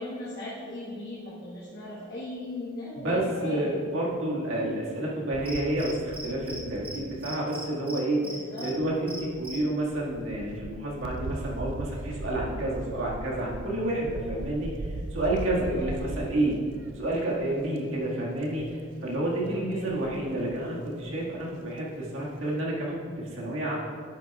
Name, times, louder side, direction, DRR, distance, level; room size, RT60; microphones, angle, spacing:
voice 1, 0.0-3.8 8.2-8.7 15.8-16.0 19.5-19.9, left 1 dB, 45° left, -9 dB, 1.3 m, -38 dB
voice 2, 3.0-8.2 8.6-14.7 15.1-16.6 17.0-23.8, right 1 dB, 85° right, -4 dB, 1.8 m, -29 dB
sound 1, 5.3-7.5 8.8-17.4 17.8-18.1 18.3-18.9 19.7-20.6 21.0-21.1 21.4-21.5, right 2 dB, 65° right, 0.4 m, -39 dB
Cricket, 5.5-6.6 6.8-7.0 7.2-8.7 9.1-9.6, right 2 dB, 5° right, 0.6 m, -39 dB
10.5 x 8.3 x 2.4 m, 2.2 s
head